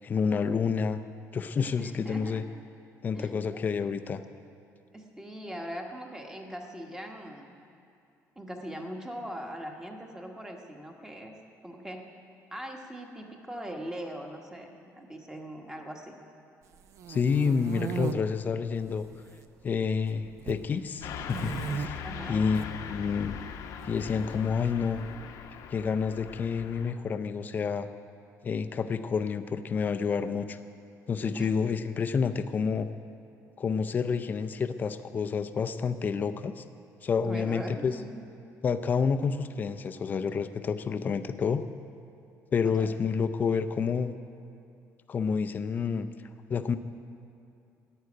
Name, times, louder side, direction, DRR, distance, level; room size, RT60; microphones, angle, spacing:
voice 1, 0.0-1.0 1.3-2.4 3.0-4.2 17.1-19.1 19.6-23.4 23.8-25.0 25.7-27.9 28.4-30.6 31.1-32.9 33.6-36.6 37.0-37.9 38.6-41.6 42.5-44.1 45.1-46.1 46.5-46.8, left 5 dB, 30° left, 10 dB, 0.5 m, -29 dB
voice 2, 1.8-2.5 3.1-3.6 4.9-7.6 8.4-11.4 11.6-12.0 12.5-16.1 22.0-22.4 31.3-31.5 37.2-38.3 42.8-42.9, equal, 10° right, 2 dB, 1.2 m, -41 dB
sound 1, 16.7-18.1 18.8-19.4 19.7-20.6 21.3-21.9 22.4-22.7 23.8-24.7, right 7 dB, 55° right, 0.7 m, -36 dB
Car passing by / Truck, 21.0-26.9, left 7 dB, 70° left, 0.9 m, -40 dB
11.5 x 8.9 x 9.5 m, 2.5 s
cardioid pair, 155°, 6 cm